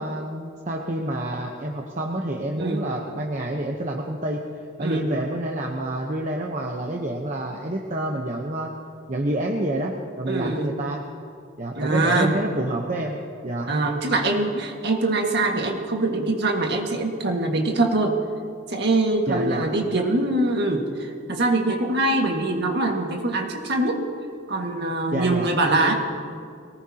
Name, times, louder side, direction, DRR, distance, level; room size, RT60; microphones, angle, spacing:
voice 1, 0.0-4.4 4.8-8.7 9.1-11.0 11.6-13.7 19.3-19.7 25.1-25.5, right 1 dB, 35° right, 0 dB, 1.0 m, -28 dB
voice 2, 2.6-2.9 4.8-5.1 10.3-10.7 11.7-12.4 13.7-18.2 18.7-24.0 24.5-25.9, right 2 dB, 55° right, 1 dB, 1.8 m, -23 dB
22.0 x 19.0 x 2.9 m, 2.3 s
head